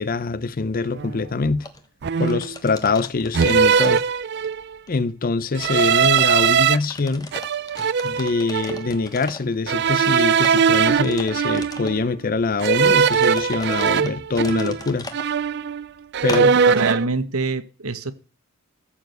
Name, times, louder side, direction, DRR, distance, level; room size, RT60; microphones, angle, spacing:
voice 1, 0.0-1.7 2.2-4.0 4.9-7.3 8.0-15.1 16.2-16.5, left 3 dB, 40° left, 0.6 m, -24 dB
sound 1, 0.9-1.2 2.0-2.6 3.3-4.8 5.6-6.8 7.3-8.9 9.7-12.0 12.6-14.9 15.1-15.9 16.1-17.1, right 6 dB, 50° right, 0.4 m, -20 dB
sound 2, 1.6-1.8 2.2-4.5 4.9-5.0 5.6-6.5 6.8-9.6 10.1-12.0 12.6-15.2 16.3-16.4, left 2 dB, 15° left, 1.2 m, -37 dB
voice 2, 16.3-18.1, right 3 dB, 75° right, 1.1 m, -25 dB
14.5 x 4.8 x 7.8 m
head